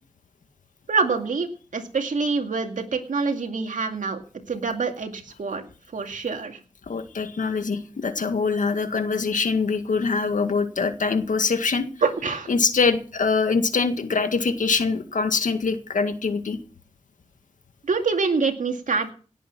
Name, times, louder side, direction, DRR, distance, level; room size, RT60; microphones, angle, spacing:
voice 1, 0.9-4.2 4.5-5.7 5.9-6.6 12.0-12.5 17.8-19.1, right 4 dB, 80° right, 5 dB, 2.3 m, -25 dB
voice 2, 6.9-11.8 12.5-16.6, left 4 dB, 80° left, 8 dB, 1.9 m, -23 dB
18.0 x 8.4 x 6.0 m, 0.39 s
cardioid pair, 45°, 13 cm